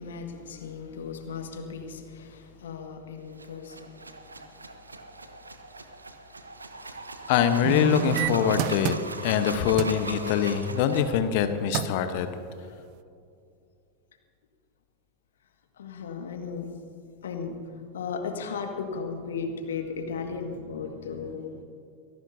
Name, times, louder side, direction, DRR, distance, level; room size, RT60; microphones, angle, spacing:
voice 1, 0.0-4.0 15.7-16.8 17.2-21.6, left 5 dB, 65° left, 4 dB, 1.8 m, -36 dB
sound 1, 3.3-11.2, right 3 dB, 80° right, 1.0 m, -40 dB
voice 2, 7.3-8.9 9.2-12.3, left 8 dB, 50° left, 9 dB, 1.0 m, -24 dB
sound 2, 7.6-9.4 9.8-10.0 11.3-11.4 11.7-12.1 12.6-12.7, right 17 dB, 50° right, 0.4 m, -29 dB
25.5 x 17.5 x 2.8 m, 2.4 s
figure-of-eight pair, 85°, 0 cm